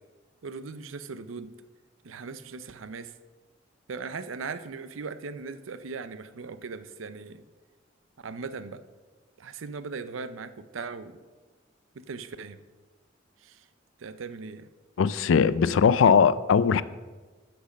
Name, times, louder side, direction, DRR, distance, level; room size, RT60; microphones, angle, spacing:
voice 1, 0.4-1.6 2.0-3.1 3.9-7.4 8.2-8.8 9.4-11.2 11.9-12.6 13.4-13.7 14.0-14.7, right 4 dB, 90° right, 13 dB, 0.5 m, -39 dB
voice 2, 15.0-16.8, left 6 dB, 75° left, 17 dB, 0.4 m, -20 dB
8.3 x 6.1 x 6.3 m, 1.3 s
head